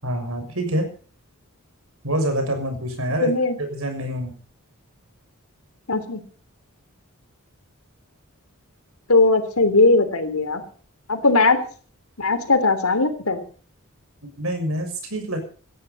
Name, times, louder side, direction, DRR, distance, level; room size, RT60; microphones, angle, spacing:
voice 1, 0.0-0.9 2.0-3.3 3.7-4.3 14.2-15.4, right 1 dB, 70° right, 5 dB, 6.7 m, -26 dB
voice 2, 3.2-3.6 5.9-6.2 9.1-10.6 11.1-11.6 12.2-13.4, left 3 dB, 75° left, 9 dB, 3.2 m, -19 dB
19.0 x 13.5 x 5.5 m, 0.42 s
head